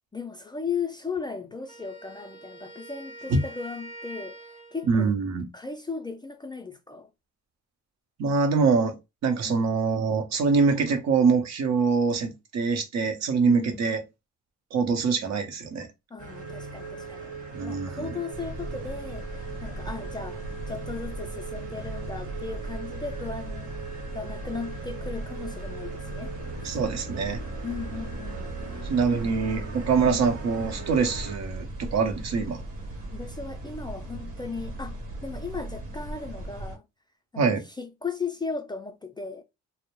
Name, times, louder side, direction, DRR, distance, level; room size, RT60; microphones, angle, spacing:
voice 1, 0.1-5.1 5.5-7.1 9.4-9.8 13.4-13.8 16.1-17.3 17.6-23.7 24.1-26.3 26.6-26.8 27.6-29.6 30.0-30.3 33.1-36.8 37.3-39.4, left 5 dB, 15° left, 0.3 m, -36 dB
Wind instrument woodwind instrument, 1.7-5.0, right 1 dB, 25° right, 0.7 m, -45 dB
voice 2, 4.9-5.5 8.2-9.0 9.2-14.0 14.7-15.9 17.5-18.1 26.6-27.4 28.9-32.6 37.4-37.6, right 5 dB, 65° right, 0.7 m, -24 dB
sound 1, 16.2-31.4, right 3 dB, 50° right, 1.1 m, -39 dB
sound 2, 18.3-36.8, right 1 dB, 85° right, 1.0 m, -38 dB
2.1 x 2.0 x 3.0 m
cardioid pair, 90°, 30 cm